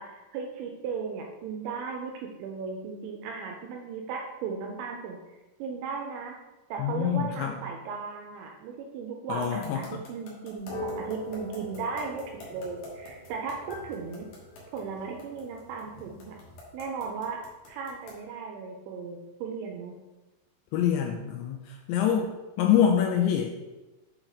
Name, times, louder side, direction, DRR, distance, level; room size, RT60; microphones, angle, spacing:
voice 1, 0.0-6.4 6.7-14.3 14.7-16.4 16.7-17.4 17.7-20.0, right 5 dB, 80° right, 2 dB, 2.7 m, -36 dB
voice 2, 6.8-7.6 9.3-10.0 20.7-23.6, left 9 dB, 90° left, 2 dB, 2.5 m, -26 dB
sound 1, 9.4-18.3, left 3 dB, 65° left, 2.8 m, -46 dB
sound 2, 10.6-16.6, left 1 dB, 45° left, 1.9 m, -43 dB
7.8 x 4.4 x 4.0 m, 1.1 s
omnidirectional pair, 5.9 m